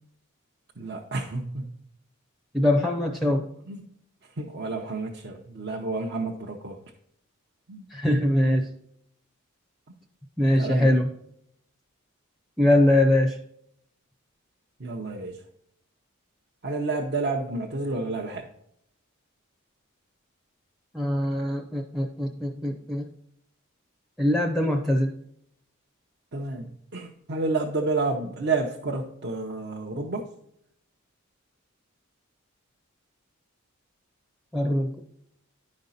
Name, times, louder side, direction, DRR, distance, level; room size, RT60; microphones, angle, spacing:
voice 1, 0.8-1.8 3.7-3.9 4.4-6.8 7.7-7.9 10.5-10.9 14.8-15.4 16.6-18.5 26.3-30.3, right 3 dB, 50° right, 0 dB, 0.8 m, -30 dB
voice 2, 2.5-3.5 7.9-8.7 10.4-11.1 12.6-13.4 20.9-23.1 24.2-25.2 34.5-35.0, left 1 dB, ahead, 2 dB, 0.5 m, -22 dB
10.5 x 5.3 x 4.1 m, 0.75 s
head